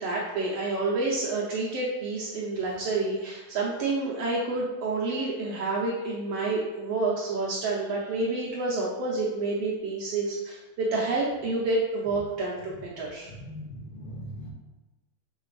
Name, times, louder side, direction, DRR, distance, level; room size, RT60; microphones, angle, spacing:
voice 1, 0.0-13.3, right 3 dB, 90° right, -5 dB, 1.3 m, -29 dB
voice 2, 13.2-14.5, equal, 85° left, -1 dB, 1.2 m, -40 dB
6.5 x 5.1 x 3.2 m, 1.1 s
omnidirectional pair, 4.0 m